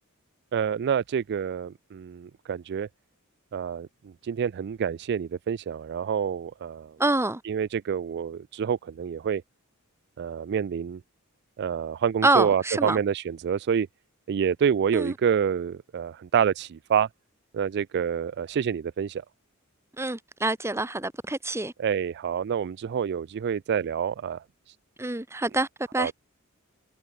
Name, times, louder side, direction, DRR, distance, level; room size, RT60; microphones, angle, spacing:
voice 1, 0.5-2.9 3.5-7.0 7.4-9.4 10.2-11.0 11.6-13.9 14.3-17.1 17.5-19.2 21.8-24.4 26.0-26.1, right 7 dB, 50° right, 0.3 m, -27 dB
voice 2, 7.0-7.4 12.2-13.0 14.9-15.1 20.0-21.7 25.0-26.1, right 2 dB, 10° right, 1.1 m, -26 dB
head